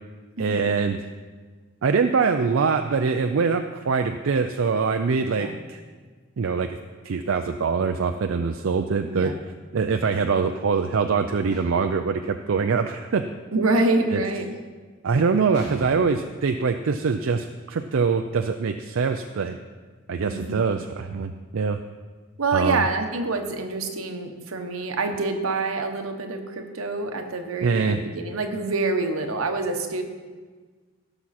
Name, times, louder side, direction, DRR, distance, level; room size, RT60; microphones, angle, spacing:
voice 1, 0.4-1.0 1.8-5.8 6.4-6.8 7.0-9.3 9.7-13.2 14.1-14.2 15.0-19.6 20.1-21.8 22.5-22.8 27.6-28.0, right 5 dB, 70° right, 6 dB, 0.4 m, -23 dB
voice 2, 9.0-9.4 13.5-14.5 20.3-20.8 22.4-30.0, right 3 dB, 85° right, 5 dB, 1.1 m, -26 dB
sound 1, 11.5-12.0 15.5-16.3, equal, 55° left, 2.3 m, -40 dB
16.0 x 6.0 x 4.2 m, 1.5 s
head